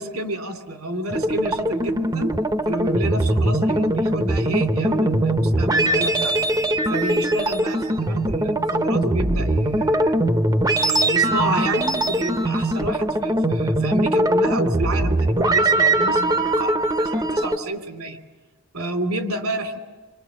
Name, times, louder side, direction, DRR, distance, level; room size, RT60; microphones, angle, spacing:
voice 1, 0.0-2.3 2.7-6.3 6.9-10.2 10.7-18.2 18.7-19.8, right 1 dB, 85° right, 5 dB, 2.7 m, -29 dB
sound 1, 1.1-17.6, right 1 dB, 15° right, 0.8 m, -21 dB
27.5 x 24.0 x 7.3 m, 1.3 s
head